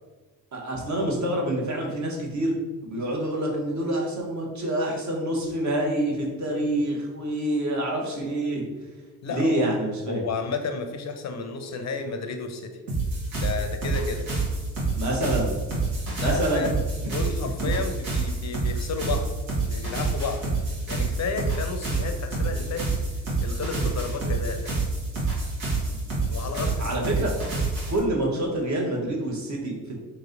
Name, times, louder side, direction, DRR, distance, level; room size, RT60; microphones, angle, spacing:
voice 1, 0.5-2.5 2.8-8.6 9.3-10.2 14.9-15.6 16.2-16.7 17.0-17.1 17.6-17.7 25.8-26.0 26.8-27.3 27.9-30.0, right 1 dB, 40° right, -1 dB, 1.2 m, -27 dB
voice 2, 9.2-9.7 10.1-12.8 13.3-14.3 16.1-16.7 17.1-19.4 19.6-20.4 20.9-22.9 23.4-24.7 26.3-26.9, left 4 dB, 35° left, 6 dB, 0.6 m, -32 dB
sound 1, 12.9-28.0, right 3 dB, 75° right, 1.3 m, -28 dB
3.1 x 2.8 x 3.7 m, 1.3 s
hypercardioid pair, 45°, 46 cm